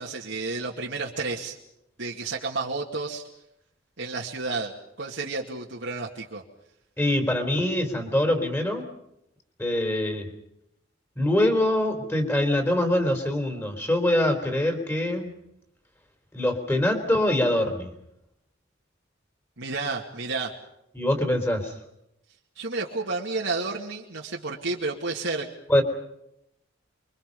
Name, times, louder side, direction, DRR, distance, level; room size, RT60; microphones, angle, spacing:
voice 1, 0.0-1.6 2.0-3.2 4.0-6.4 19.6-20.5 22.6-25.5, right 3 dB, 70° right, -2 dB, 2.4 m, -31 dB
voice 2, 7.0-8.9 9.6-10.3 11.2-15.3 16.3-17.9 20.9-21.7 25.7-25.8, left 1 dB, 10° left, 5 dB, 3.8 m, -24 dB
28.5 x 24.0 x 5.5 m, 0.81 s
head